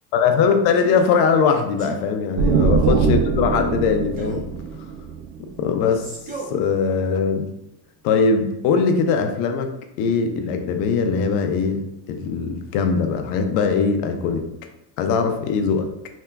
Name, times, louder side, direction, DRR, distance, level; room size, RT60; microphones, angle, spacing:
voice 1, 0.1-4.5 5.6-6.1 6.5-7.5 8.0-11.8 12.1-14.5 15.0-15.9, left 5 dB, 75° left, 6 dB, 0.6 m, -21 dB
Male speech man speaking, 0.7-1.1 1.8-2.1 2.7-3.1 4.2-4.5 5.8-6.6, right 3 dB, 20° right, 0.4 m, -35 dB
sound 1, 2.4-6.0, right 5 dB, 65° right, 0.5 m, -22 dB
3.4 x 2.8 x 2.2 m, 0.86 s
supercardioid pair, 125°, 49 cm